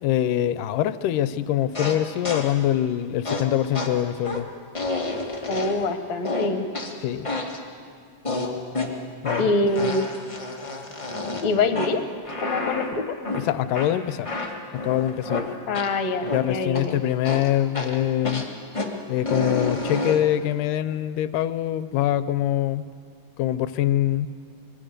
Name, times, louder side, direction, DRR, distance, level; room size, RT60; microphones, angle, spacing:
voice 1, 0.0-4.5 7.0-7.3 9.2-9.5 13.3-14.3 14.7-15.5 16.3-18.4 19.1-22.9 23.4-24.3, left 12 dB, 80° left, 13 dB, 2.2 m, -24 dB
sound 1, 1.7-2.6 3.2-5.9 6.2-7.7 8.2-16.0 16.2-16.9 17.2-20.4, left 2 dB, 15° left, 1.1 m, -30 dB
voice 2, 5.5-6.7 9.4-10.1 11.4-12.0 12.4-13.1 15.7-17.0, left 2 dB, 60° left, 7 dB, 2.4 m, -24 dB
25.5 x 23.0 x 6.7 m, 2.3 s
omnidirectional pair, 3.8 m